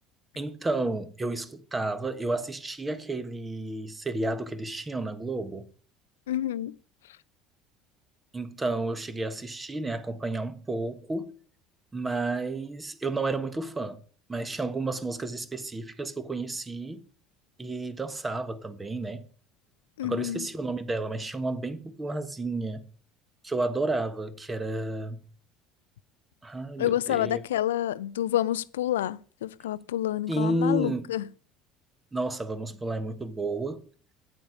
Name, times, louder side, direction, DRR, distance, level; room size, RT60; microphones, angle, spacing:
voice 1, 0.3-5.6 8.3-11.3 11.9-14.0 14.3-17.0 17.6-19.3 20.0-22.9 23.4-25.2 26.4-27.4 30.3-31.1 32.1-33.8, right 2 dB, 20° right, 1.4 m, -31 dB
voice 2, 6.3-6.7 20.0-20.5 26.8-31.3, left 12 dB, 75° left, 0.4 m, -28 dB
8.8 x 8.6 x 4.8 m
figure-of-eight pair, 60°, 0 cm